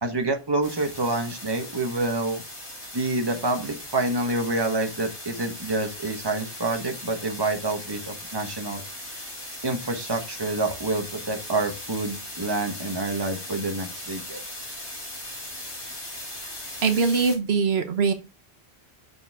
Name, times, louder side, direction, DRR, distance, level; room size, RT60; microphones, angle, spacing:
voice 1, 0.0-2.4 2.9-8.8 9.6-14.4, right 2 dB, 25° right, 4 dB, 1.3 m, -27 dB
sound 1, 0.6-17.4, left 1 dB, 55° left, 4.4 m, -39 dB
voice 2, 16.8-18.1, right 5 dB, 80° right, 6 dB, 1.3 m, -22 dB
7.0 x 6.8 x 3.6 m, 0.28 s
omnidirectional pair, 1.0 m